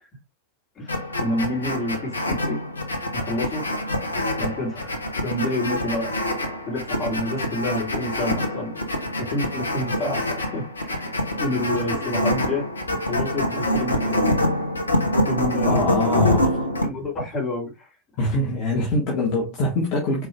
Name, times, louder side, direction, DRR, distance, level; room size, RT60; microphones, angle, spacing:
voice 1, 0.8-2.6 3.1-3.6 4.4-4.9 5.2-6.1 6.6-8.7 9.3-11.1 11.4-12.6 13.1-14.2 15.2-15.9 16.8-17.9, left 1 dB, 25° left, 3.0 m, -28 dB
sound 1, 0.9-16.9, left 1 dB, 75° left, 0.9 m, -25 dB
voice 2, 15.7-16.6 18.2-20.3, left 2 dB, 40° left, 1.4 m, -24 dB
4.6 x 4.6 x 2.3 m
figure-of-eight pair, 90°, 0 cm